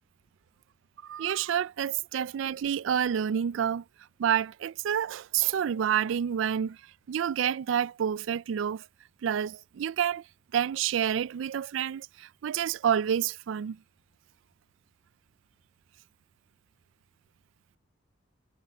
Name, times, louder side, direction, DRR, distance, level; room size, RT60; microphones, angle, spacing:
voice 1, 1.0-3.8 4.2-6.8 7.1-8.9 9.2-10.2 10.5-13.8, right 9 dB, 75° right, 0.3 m, -28 dB
head